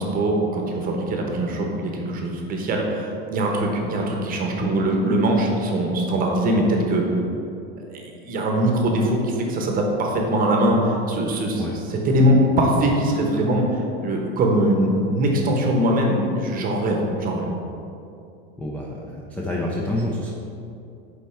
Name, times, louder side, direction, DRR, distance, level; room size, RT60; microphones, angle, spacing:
voice 1, 0.0-7.0 7.9-11.6 11.9-17.5, right 1 dB, 30° right, 0 dB, 0.9 m, -22 dB
voice 2, 18.6-20.3, left 1 dB, 5° left, -3 dB, 0.3 m, -28 dB
5.4 x 4.4 x 4.3 m, 2.6 s
supercardioid pair, 130°, 31 cm